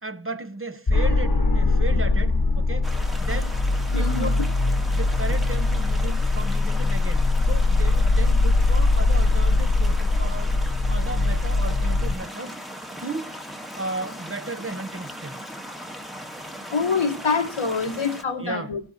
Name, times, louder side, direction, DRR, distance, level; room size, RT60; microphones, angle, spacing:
voice 1, 0.0-3.6 3.9-4.5 4.9-10.6 10.9-12.5 13.0-13.4 13.8-15.3 18.4-18.7, right 2 dB, 25° right, 0.9 m, -34 dB
sound 1, 0.9-12.1, left 3 dB, 50° left, 1.2 m, -21 dB
sound 2, 2.8-18.2, equal, ahead, 1.3 m, -38 dB
voice 2, 3.9-4.3 16.3-18.8, left 4 dB, 85° left, 1.4 m, -26 dB
22.5 x 15.0 x 2.8 m
wide cardioid pair, 45°, 47 cm